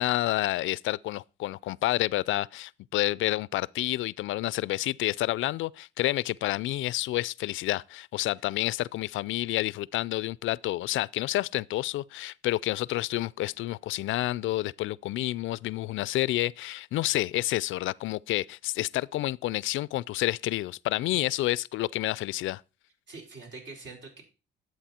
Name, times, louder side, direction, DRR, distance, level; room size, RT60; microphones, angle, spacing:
voice 1, 0.0-22.6, left 16 dB, 80° left, 0.4 m, -29 dB
voice 2, 23.1-24.2, right 3 dB, 65° right, 4.7 m, -45 dB
11.5 x 8.0 x 4.3 m
cardioid pair, 90°, 20 cm